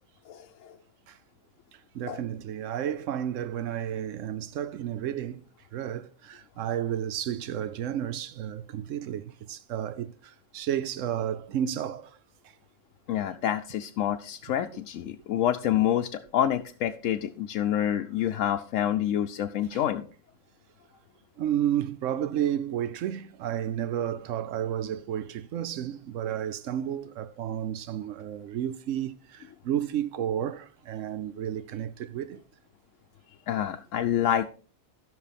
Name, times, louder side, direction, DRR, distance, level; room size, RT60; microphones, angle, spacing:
voice 1, 0.3-0.8 2.1-2.2 13.1-20.0 33.5-34.5, left 11 dB, 90° left, 1.0 m, -27 dB
voice 2, 1.9-5.4 5.7-12.2 19.7-19.8 21.4-32.4, right 10 dB, 85° right, 1.0 m, -32 dB
14.0 x 6.2 x 4.1 m
omnidirectional pair, 1.3 m